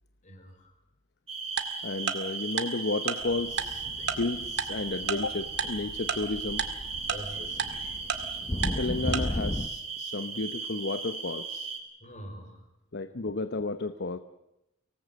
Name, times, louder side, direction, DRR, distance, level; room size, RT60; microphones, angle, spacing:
voice 1, 0.2-0.7 7.1-8.0 12.0-12.6, equal, 40° left, 6 dB, 5.1 m, -45 dB
sound 1, 1.3-11.8, right 4 dB, 35° right, 4.9 m, -37 dB
Tick-tock, 1.6-1.7 2.1-2.2 2.6-2.7 3.1-3.2 3.6-3.7 4.1-4.2 4.6-4.7 5.1-5.2 5.6-5.7 6.1-6.2 6.6-6.7 7.1-7.2 7.6-7.7 8.1-8.2 8.6-8.7 9.1-9.2, right 7 dB, 60° right, 2.1 m, -28 dB
voice 2, 1.8-6.7 8.8-11.8 12.9-14.2, left 3 dB, 60° left, 11 dB, 0.9 m, -32 dB
sound 2, 3.2-9.7, left 1 dB, 25° left, 0.9 m, -36 dB
24.0 x 19.0 x 8.0 m, 0.86 s
head